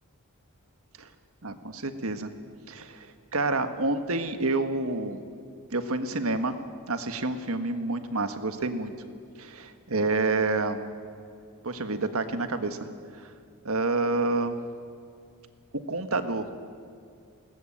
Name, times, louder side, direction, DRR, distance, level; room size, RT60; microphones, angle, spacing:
voice 1, 1.4-2.3 2.7-5.2 5.7-6.6 6.9-8.9 9.4-10.8 11.6-12.9 13.2-13.3 13.6-14.5 15.9-16.5, right 3 dB, 65° right, 8 dB, 1.6 m, -28 dB
21.0 x 19.0 x 9.0 m, 2.3 s
head